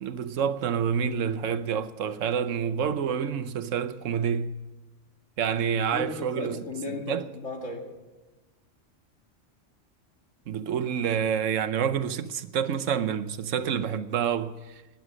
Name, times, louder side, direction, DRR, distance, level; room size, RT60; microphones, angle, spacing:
voice 1, 0.0-4.5 5.4-6.6 7.1-7.2 10.5-14.7, right 7 dB, 85° right, 1.2 m, -28 dB
voice 2, 5.9-7.9, left 2 dB, 80° left, 2.6 m, -35 dB
20.5 x 9.2 x 6.4 m
omnidirectional pair, 1.3 m